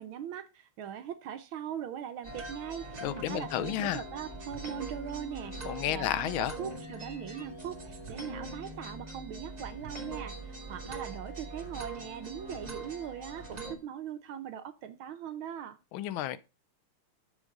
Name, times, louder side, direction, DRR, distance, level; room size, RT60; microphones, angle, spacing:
voice 1, 0.0-15.8, right 9 dB, 70° right, 1.5 m, -41 dB
sound 1, 2.2-13.8, right 2 dB, 20° right, 1.9 m, -42 dB
voice 2, 3.0-4.0 5.6-6.5 15.9-16.4, left 12 dB, 75° left, 1.4 m, -32 dB
7.4 x 6.3 x 5.2 m
omnidirectional pair, 2.4 m